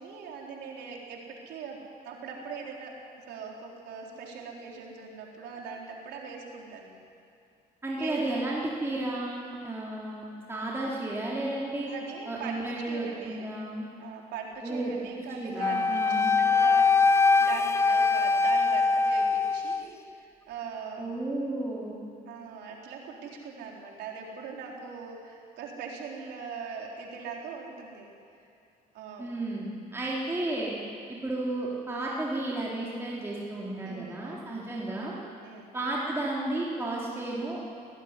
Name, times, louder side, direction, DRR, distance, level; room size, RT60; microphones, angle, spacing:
voice 1, 0.0-3.0 3.3-6.9 8.0-8.4 11.9-13.5 14.0-21.2 22.3-28.1 28.9-29.3 33.8-34.5 35.4-35.7, right 5 dB, 80° right, -1 dB, 4.0 m, -41 dB
voice 2, 7.8-11.9 12.3-13.8 14.6-14.9 15.4-16.3 21.0-22.0 29.2-30.7 31.1-35.1 35.7-37.6, right 2 dB, 15° right, -6 dB, 3.7 m, -33 dB
Wind instrument woodwind instrument, 15.6-19.9, left 4 dB, 15° left, 0.6 m, -23 dB
19.0 x 18.5 x 9.9 m, 2.5 s
cardioid pair, 110°, 17 cm